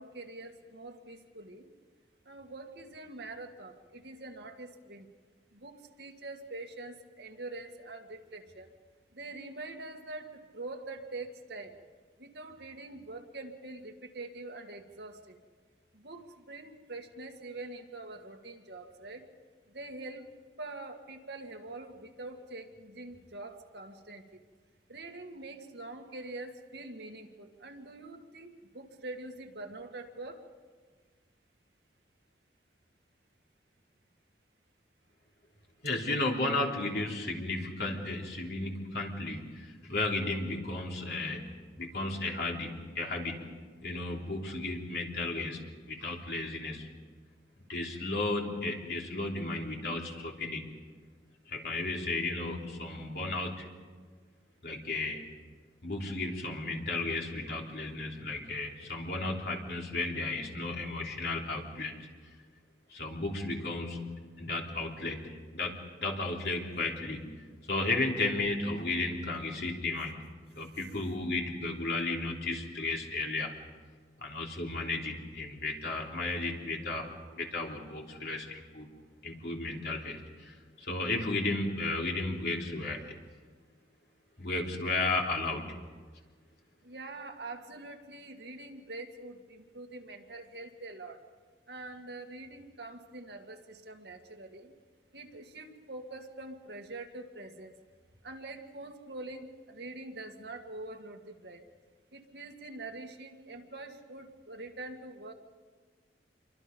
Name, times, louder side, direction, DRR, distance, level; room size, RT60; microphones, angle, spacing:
voice 1, 0.0-1.7 2.3-5.1 5.5-8.7 9.1-11.8 12.2-15.4 15.9-19.3 19.7-20.3 20.6-24.4 24.9-30.4 70.7-70.9 86.8-91.2 91.7-94.7 95.1-97.7 98.2-101.6 102.1-105.3, right 2 dB, 70° right, 4 dB, 2.0 m, -44 dB
voice 2, 35.8-41.4 41.8-43.4 43.8-45.6 45.9-46.9 47.7-50.7 51.5-53.7 54.6-55.2 55.8-61.9 62.9-67.2 67.7-70.2 70.6-73.5 74.2-78.9 79.2-83.1 84.4-85.6, left 2 dB, 60° left, 0 dB, 3.5 m, -34 dB
27.5 x 24.0 x 5.3 m, 1.5 s
head